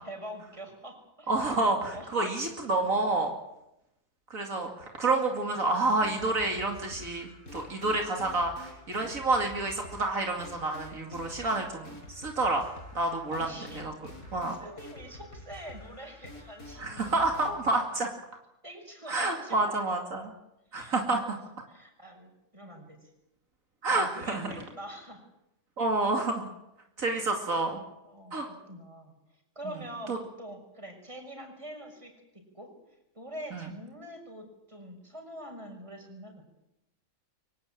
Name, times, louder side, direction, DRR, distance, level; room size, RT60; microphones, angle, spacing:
voice 1, 0.0-1.6 1.9-2.4 13.3-13.9 14.5-17.1 18.6-19.8 20.7-21.4 21.7-23.1 23.9-25.2 28.0-32.7 33.1-36.4, right 1 dB, 20° right, 3 dB, 6.1 m, -45 dB
voice 2, 1.3-3.3 4.3-12.7 12.9-13.5 13.8-13.9 14.3-14.5 16.8-18.1 19.1-20.3 20.7-21.3 23.8-24.5 25.8-26.5 27.0-27.8 28.3-28.5 30.1-30.2 33.5-33.7, right 2 dB, 70° right, 2 dB, 2.9 m, -29 dB
sound 1, 6.0-18.1, left 2 dB, 85° left, 7.6 m, -48 dB
24.0 x 17.5 x 9.0 m, 0.87 s
omnidirectional pair, 1.5 m